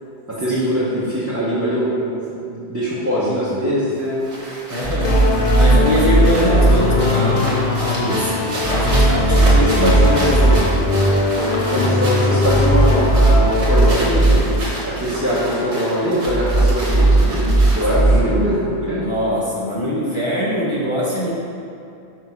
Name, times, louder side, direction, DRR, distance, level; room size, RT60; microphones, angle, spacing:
voice 1, 0.3-2.1 2.5-4.2 6.0-6.8 9.3-10.8 11.7-19.1, equal, 15° right, -10 dB, 1.1 m, -22 dB
sound 1, 4.0-18.1, right 1 dB, 80° right, 1.8 m, -30 dB
voice 2, 4.7-5.2 5.5-8.3 8.7-10.3 18.0-18.4 18.9-21.3, equal, 30° left, -8 dB, 1.0 m, -22 dB
sound 2, 4.8-6.8 8.6-10.6 12.5-14.4 16.3-18.2, right 2 dB, 65° right, 1.8 m, -16 dB
sound 3, 5.0-14.0, left 3 dB, 55° left, 0.8 m, -20 dB
6.0 x 5.4 x 4.6 m, 2.6 s
omnidirectional pair, 1.1 m